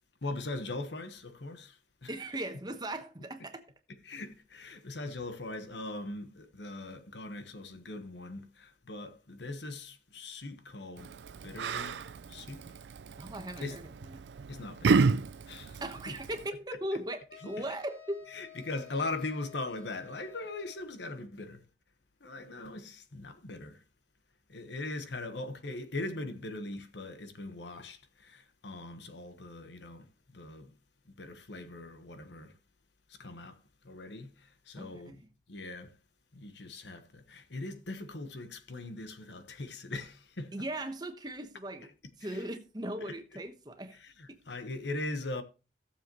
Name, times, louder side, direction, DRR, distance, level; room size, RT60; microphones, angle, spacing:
voice 1, 0.2-2.1 4.1-11.1 11.4-12.0 12.3-12.6 13.6-13.8 14.5-15.1 15.5-16.1 17.4-17.6 18.3-21.6 22.2-23.8 24.5-30.0 30.3-30.7 31.1-32.5 33.2-33.6 33.8-34.3 34.7-35.2 35.5-35.9 36.3-40.6 43.0-43.1 44.0-44.1 44.5-45.4, left 2 dB, 80° left, 1.3 m, -40 dB
voice 2, 2.1-3.6 13.2-14.3 15.8-18.3 34.8-35.3 40.5-41.9 42.2-44.0 44.3-44.4, right 1 dB, 25° right, 1.1 m, -38 dB
Yell, 11.0-16.5, right 4 dB, 80° right, 0.4 m, -32 dB
sound 1, 17.3-21.0, left 9 dB, 60° left, 2.3 m, -53 dB
16.0 x 7.1 x 3.0 m
head